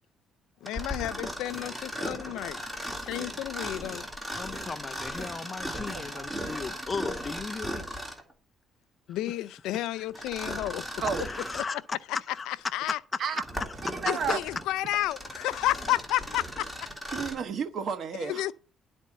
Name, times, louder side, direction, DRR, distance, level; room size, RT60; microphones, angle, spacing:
voice 1, 0.6-2.7 3.0-4.1 9.1-10.8 11.5-12.0 12.5-13.0 14.0-16.8 18.2-18.5, left 15 dB, 90° left, 0.5 m, -31 dB
Mechanisms, 0.6-8.3 10.1-11.8 12.3-12.4 13.1-17.5, equal, 10° right, 2.1 m, -37 dB
voice 2, 4.4-7.9 11.2-11.8 12.3-12.5, left 4 dB, 25° left, 0.5 m, -37 dB
voice 3, 5.9-6.2 11.0-11.2 13.2-13.4 13.9-14.4 17.1-18.4, right 6 dB, 55° right, 1.2 m, -32 dB
11.5 x 4.4 x 7.5 m
cardioid pair, 125°, 0 cm